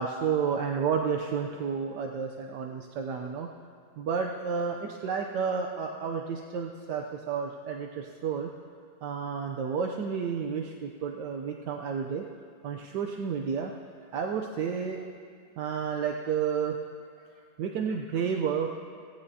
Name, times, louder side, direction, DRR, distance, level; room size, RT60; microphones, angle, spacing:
voice 1, 0.0-3.5 4.0-8.5 9.0-12.3 12.6-15.1 15.6-16.8 17.6-18.7, right 6 dB, 80° right, 2 dB, 1.4 m, -31 dB
24.5 x 17.5 x 2.8 m, 2.2 s
omnidirectional pair, 1.8 m